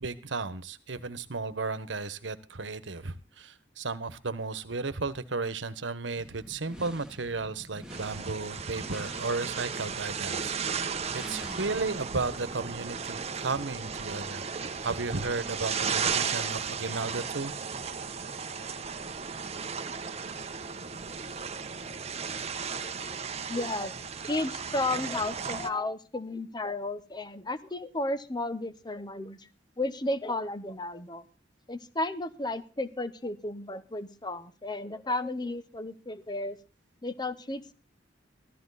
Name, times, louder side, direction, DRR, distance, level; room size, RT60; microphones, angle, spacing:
voice 1, 0.0-14.5 14.8-17.5, right 3 dB, 90° right, 14 dB, 1.2 m, -34 dB
sound 1, 6.2-13.7, right 1 dB, 5° right, 1.8 m, -47 dB
sound 2, 7.9-25.7, right 6 dB, 35° right, 0.9 m, -35 dB
voice 2, 22.7-23.2 23.5-23.9 24.3-29.5 29.8-31.2 31.7-36.6 37.0-37.7, left 2 dB, 25° left, 13 dB, 1.0 m, -33 dB
15.0 x 13.5 x 4.1 m, 0.34 s
head